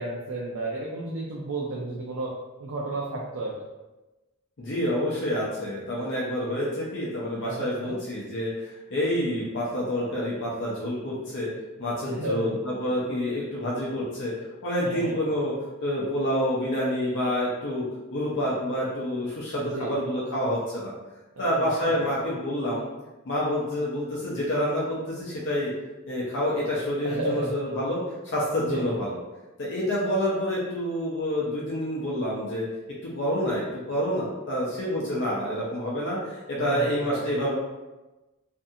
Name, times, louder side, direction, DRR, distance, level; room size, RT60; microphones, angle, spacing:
voice 1, 0.0-2.3 2.6-3.5 7.4-8.0 12.0-12.5 14.8-15.2 19.6-20.0 21.4-22.2 27.0-27.6 28.6-28.9 36.6-37.3, right 2 dB, 80° right, -4 dB, 0.5 m, -32 dB
voice 2, 4.6-11.5 11.8-14.3 14.6-15.5 15.8-17.8 18.1-20.9 21.4-22.8 23.2-25.7 26.1-29.2 29.6-32.7 33.0-37.5, equal, 55° left, -6 dB, 0.6 m, -28 dB
2.6 x 2.4 x 2.6 m, 1.1 s
head